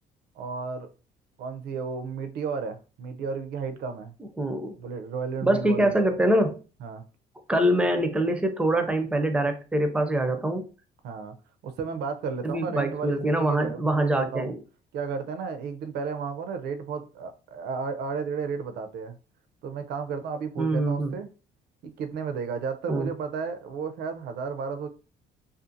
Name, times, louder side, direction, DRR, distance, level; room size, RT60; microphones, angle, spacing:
voice 1, 0.4-0.9 1.4-4.1 4.8-6.0 6.8-7.0 11.0-11.4 11.6-14.5 14.9-19.2 19.6-21.3 21.8-24.9, right 5 dB, 70° right, 0.5 m, -33 dB
voice 2, 4.4-4.7 5.4-6.6 7.5-10.7 12.4-14.6 20.6-21.2 22.9-23.1, right 1 dB, 5° right, 0.4 m, -24 dB
2.5 x 2.4 x 2.6 m
cardioid pair, 110°, 17 cm